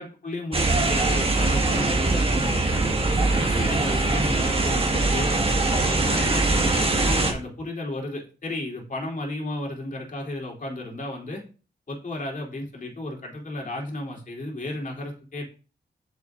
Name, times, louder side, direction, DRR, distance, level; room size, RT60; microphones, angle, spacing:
voice 1, 0.0-5.3 5.7-11.4 11.9-15.4, left 1 dB, 45° left, 0 dB, 2.9 m, -33 dB
sound 1, 0.5-7.3, right 2 dB, 30° right, 1.6 m, -22 dB
8.2 x 7.2 x 2.5 m, 0.36 s
cardioid pair, 75°, 18 cm